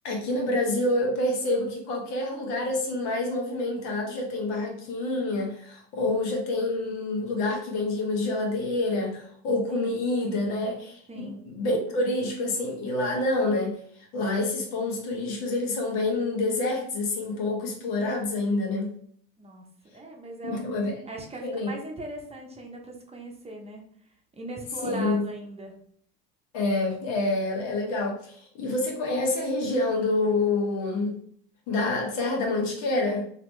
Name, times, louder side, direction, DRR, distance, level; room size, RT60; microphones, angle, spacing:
voice 1, 0.0-13.8 14.1-18.9 20.4-20.9 21.4-21.7 24.8-25.2 26.5-31.2 31.7-33.3, left 2 dB, 65° left, 1 dB, 1.1 m, -27 dB
voice 2, 11.1-11.4 19.4-19.7 19.9-20.6 21.1-23.8 24.3-25.7, right 2 dB, 20° right, 1 dB, 0.8 m, -39 dB
2.9 x 2.8 x 3.2 m, 0.62 s
supercardioid pair, 85°, 30 cm